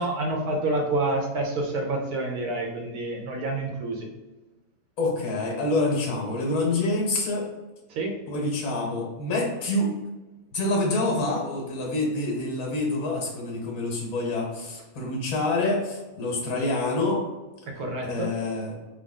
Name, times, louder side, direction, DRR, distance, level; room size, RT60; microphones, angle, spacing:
voice 1, 0.0-4.1 7.9-8.2 17.7-18.3, right 2 dB, 75° right, 1 dB, 1.2 m, -28 dB
voice 2, 5.0-7.5 8.3-9.9 10.5-17.2 18.0-18.8, left 2 dB, 65° left, -2 dB, 1.4 m, -27 dB
3.5 x 2.3 x 3.6 m, 1.1 s
omnidirectional pair, 1.6 m